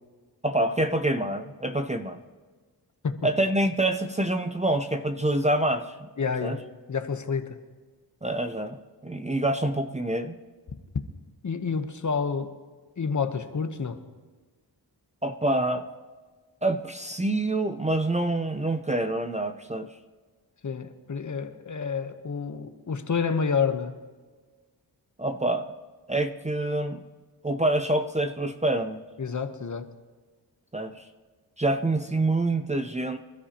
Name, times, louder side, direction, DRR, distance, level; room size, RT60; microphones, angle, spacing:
voice 1, 0.4-2.2 3.2-6.1 6.4-6.6 8.2-8.8 9.0-10.3 15.2-15.9 16.6-19.9 25.2-25.7 26.1-27.0 27.4-29.0 30.7-31.0 31.6-33.2, right 1 dB, 15° right, 8 dB, 0.6 m, -26 dB
voice 2, 6.2-6.6 6.9-7.6 11.4-12.5 13.0-14.0 20.6-23.9 29.2-29.9, left 5 dB, 45° left, 9 dB, 1.0 m, -29 dB
26.0 x 13.0 x 2.9 m, 1.4 s
wide cardioid pair, 90°, 41 cm